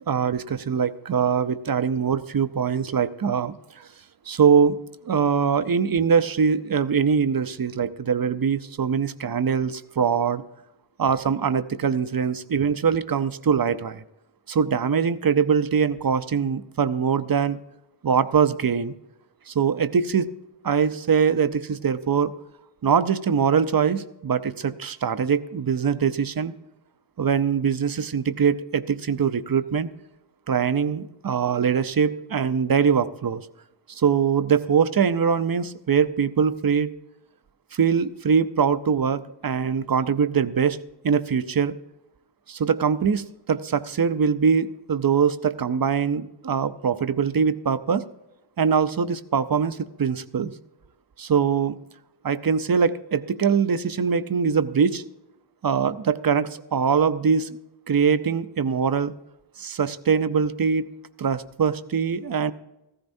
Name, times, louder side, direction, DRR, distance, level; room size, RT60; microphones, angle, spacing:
voice 1, 0.1-3.9 4.3-4.8 5.0-10.4 11.0-14.0 14.5-17.6 18.0-18.9 19.5-20.3 20.6-22.3 22.8-26.5 27.2-29.9 30.5-33.4 33.9-36.9 37.7-40.8 41.0-41.7 42.5-48.0 48.6-50.5 51.2-51.8 52.2-55.0 55.6-57.5 57.9-59.1 59.6-60.9 61.2-62.5, right 6 dB, 50° right, 13 dB, 0.6 m, -22 dB
15.0 x 13.5 x 2.7 m, 0.92 s
wide cardioid pair, 55°, 46 cm